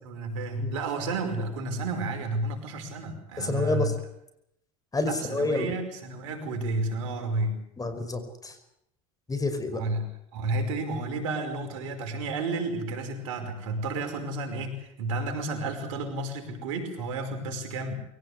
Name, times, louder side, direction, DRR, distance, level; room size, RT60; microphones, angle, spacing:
voice 1, 0.0-3.9 5.0-7.7 9.8-10.0 10.3-17.9, right 2 dB, 80° right, 5 dB, 5.4 m, -31 dB
voice 2, 3.4-3.9 4.9-5.7 7.8-8.6 9.3-9.8, left 2 dB, 20° left, 10 dB, 5.3 m, -28 dB
23.0 x 17.5 x 8.2 m, 0.78 s
hypercardioid pair, 80°, 17 cm